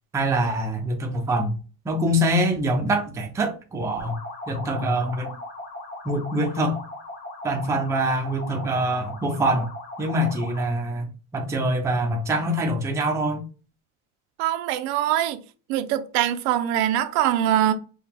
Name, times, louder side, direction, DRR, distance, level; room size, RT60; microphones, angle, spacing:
voice 1, 0.1-1.5 1.9-4.2 4.5-5.3 6.0-6.8 7.4-9.7 10.0-11.1 11.3-13.4, right 1 dB, 10° right, 0.4 m, -24 dB
sound 1, 4.0-10.8, left 2 dB, 25° left, 1.1 m, -38 dB
voice 2, 14.4-15.4 15.7-17.7, right 11 dB, 80° right, 0.6 m, -23 dB
4.6 x 2.3 x 3.5 m
cardioid pair, 170°, 36 cm